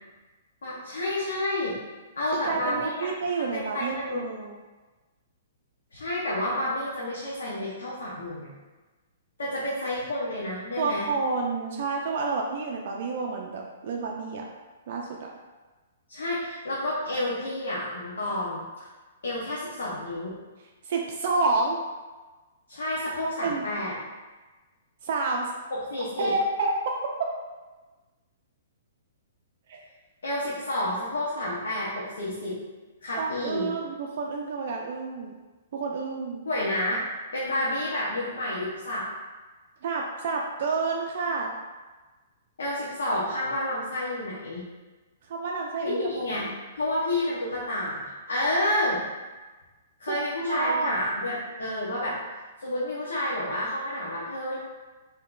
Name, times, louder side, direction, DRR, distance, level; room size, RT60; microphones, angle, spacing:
voice 1, 0.6-1.8 2.2-3.1 3.5-4.2 5.9-8.5 9.4-11.1 16.1-18.6 19.2-20.3 22.7-23.9 25.7-26.3 30.2-32.6 33.0-33.7 36.5-37.0 37.3-39.0 42.6-44.6 45.8-49.0 50.0-52.2 52.6-54.6, left 1 dB, 85° left, -7 dB, 0.8 m, -30 dB
voice 2, 2.3-4.6 10.8-14.4 14.9-15.3 20.8-21.8 23.4-23.7 25.0-25.5 26.2-26.7 29.7-29.8 33.2-35.3 35.7-36.4 39.8-41.5 45.3-46.3 50.1-50.2 50.5-51.0, right 3 dB, 60° right, 0 dB, 0.4 m, -29 dB
3.6 x 2.7 x 2.4 m, 1.2 s
hypercardioid pair, 140°, 0 cm